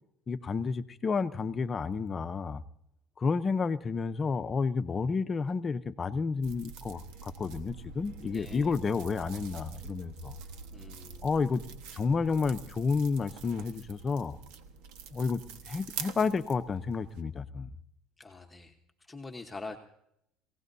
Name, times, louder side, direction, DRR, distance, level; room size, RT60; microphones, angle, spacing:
voice 1, 0.3-2.6 3.2-10.4 11.2-11.6 11.9-14.4 15.1-15.4 15.7-17.7, left 5 dB, 30° left, 11 dB, 0.7 m, -30 dB
sound 1, 6.4-17.2, right 6 dB, 80° right, 1.3 m, -45 dB
voice 2, 8.2-8.7 10.7-11.3 18.2-18.7 19.1-19.8, left 3 dB, 10° left, 2 dB, 1.1 m, -44 dB
23.5 x 17.0 x 2.7 m, 0.77 s
supercardioid pair, 115°, 0 cm